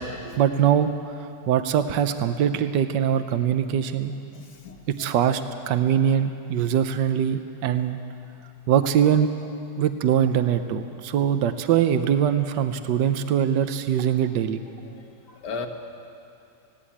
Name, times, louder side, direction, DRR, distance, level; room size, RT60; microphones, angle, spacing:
voice 1, 0.4-0.9 1.5-4.1 4.9-5.4 5.7-8.0 8.7-9.3 9.8-14.6, right 9 dB, 80° right, 9 dB, 1.4 m, -22 dB
voice 2, 4.3-4.8 14.9-15.0 15.4-15.7, left 4 dB, 70° left, 3 dB, 2.0 m, -35 dB
19.5 x 17.0 x 8.6 m, 2.6 s
omnidirectional pair, 1.9 m